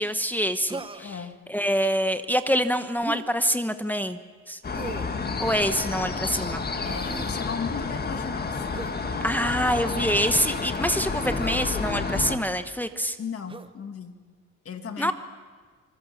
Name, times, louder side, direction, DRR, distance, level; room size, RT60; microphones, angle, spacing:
voice 1, 0.0-1.1 1.5-4.2 4.5-4.6 5.4-6.6 9.2-13.2 15.0-15.1, equal, 5° left, 9 dB, 1.1 m, -25 dB
Human voice, 0.7-1.2 3.0-3.3 4.7-5.2 6.8-7.4 8.7-9.0 9.9-10.2 11.2-11.8 13.5-13.7, right 3 dB, 15° right, 1.0 m, -38 dB
voice 2, 1.0-1.4 6.8-8.5 13.2-14.2 14.6-15.1, left 6 dB, 50° left, 6 dB, 2.2 m, -36 dB
sound 1, 4.6-12.4, left 4 dB, 30° left, 1.9 m, -30 dB
26.5 x 20.0 x 7.1 m, 1.5 s
cardioid pair, 90°, 30 cm